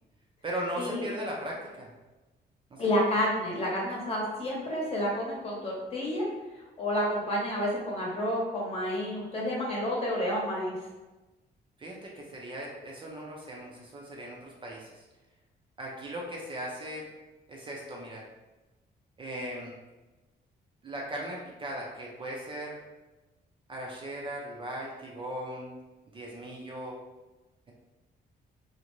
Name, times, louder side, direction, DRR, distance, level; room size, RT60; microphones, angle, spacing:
voice 1, 0.4-1.9 2.7-2.9 11.8-15.0 15.8-17.1 17.5-18.2 19.2-19.7 20.8-22.8 23.7-25.8 26.1-27.0, right 1 dB, 30° right, -2 dB, 0.4 m, -38 dB
voice 2, 2.8-6.3 6.8-10.7, equal, 35° left, -4 dB, 0.9 m, -30 dB
2.5 x 2.1 x 2.9 m, 1.1 s
cardioid pair, 115°, 18 cm